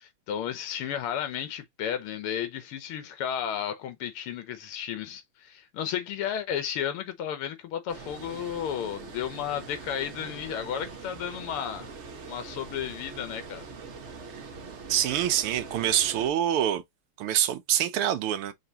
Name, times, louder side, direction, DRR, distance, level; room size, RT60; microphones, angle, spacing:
voice 1, 0.0-11.9 12.3-13.7, left 9 dB, 85° left, 1.8 m, -33 dB
Water, 7.9-16.3, right 4 dB, 40° right, 1.1 m, -43 dB
voice 2, 14.9-16.8 17.2-18.5, right 11 dB, 85° right, 1.7 m, -25 dB
5.8 x 3.1 x 2.9 m
omnidirectional pair, 2.4 m